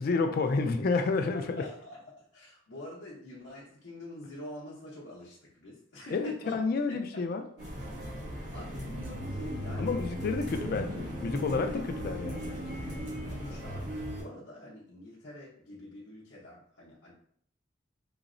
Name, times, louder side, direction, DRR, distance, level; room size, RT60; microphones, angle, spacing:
voice 1, 0.0-1.6 6.1-7.4 9.8-12.8, left 4 dB, 50° left, 0.3 m, -30 dB
voice 2, 1.6-6.6 7.1-7.2 8.1-10.0 11.7-11.8 12.9-17.1, left 1 dB, 65° left, 0.7 m, -46 dB
sound 1, 7.6-14.2, equal, 55° right, 1.1 m, -37 dB
3.9 x 2.0 x 2.5 m
head